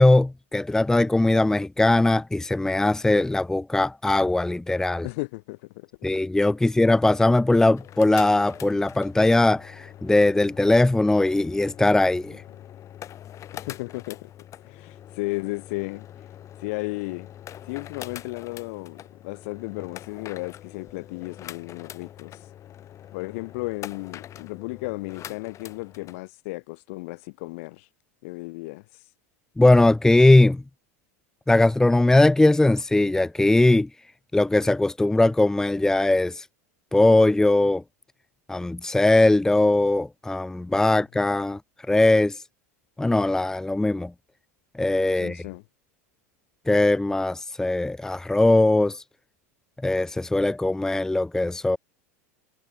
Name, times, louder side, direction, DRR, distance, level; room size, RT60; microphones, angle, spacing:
voice 1, 0.0-5.0 6.0-12.4 29.6-30.6 31.5-33.9 34.3-36.4 36.9-37.8 38.5-41.6 41.9-42.4 43.0-44.1 44.8-45.4 46.7-49.0 49.8-51.8, left 2 dB, 5° left, 0.9 m, -20 dB
voice 2, 5.0-5.9 13.5-14.3 14.6-16.1 16.6-17.3 17.6-22.4 23.1-27.9 28.2-28.8 40.9-41.3 45.1-45.6, left 25 dB, 65° left, 8.0 m, -34 dB
sound 1, 7.7-26.2, left 11 dB, 40° left, 6.8 m, -43 dB
hypercardioid pair, 95°, 8 cm